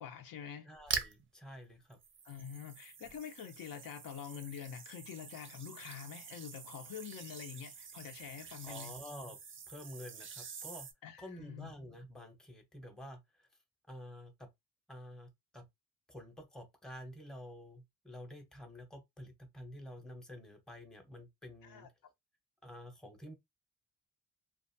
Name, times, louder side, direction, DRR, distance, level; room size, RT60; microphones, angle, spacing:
voice 1, 0.0-0.7 2.2-9.0 11.0-11.7 21.6-21.9, left 8 dB, 70° left, 0.7 m, -46 dB
voice 2, 0.7-2.0 8.6-9.4 9.7-10.9 11.2-13.2 13.9-14.5 14.9-15.6 16.1-21.9 22.6-23.3, equal, ahead, 0.7 m, -49 dB
sound 1, 0.8-1.3 1.9-10.9, right 6 dB, 35° right, 0.5 m, -45 dB
2.5 x 2.3 x 2.6 m
cardioid pair, 105°, 35 cm